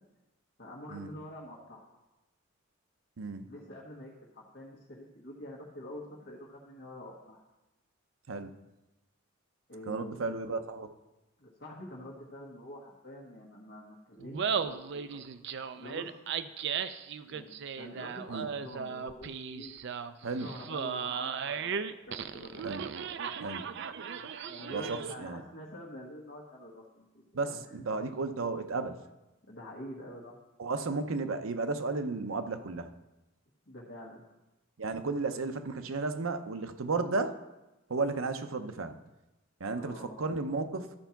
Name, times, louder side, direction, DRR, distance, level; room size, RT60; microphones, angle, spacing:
voice 1, 0.6-1.8 3.4-7.4 9.7-10.6 11.4-15.2 15.7-16.1 17.3-19.7 20.4-21.8 22.1-22.6 24.4-27.8 29.5-30.4 33.7-34.2 39.7-40.3, left 1 dB, 55° left, -4 dB, 1.5 m, -46 dB
voice 2, 3.2-3.5 8.3-8.5 9.9-10.9 18.3-18.5 20.2-20.5 22.6-22.8 23.4-23.7 24.7-25.4 27.3-29.1 30.6-32.9 34.8-37.4 37.9-39.0 39.6-40.9, right 3 dB, 85° right, 8 dB, 0.7 m, -34 dB
Laughter, 14.2-25.3, right 6 dB, 60° right, 0.4 m, -36 dB
12.5 x 4.5 x 5.8 m, 1.0 s
head